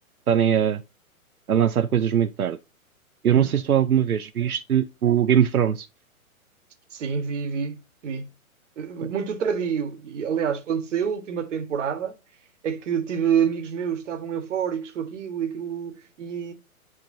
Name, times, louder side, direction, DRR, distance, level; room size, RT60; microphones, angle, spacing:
voice 1, 0.3-0.8 1.5-2.6 3.2-5.9, right 9 dB, 85° right, 0.7 m, -21 dB
voice 2, 6.9-8.3 8.8-12.1 12.6-16.5, right 7 dB, 55° right, 1.8 m, -27 dB
10.5 x 3.7 x 2.7 m
figure-of-eight pair, 125°, 43 cm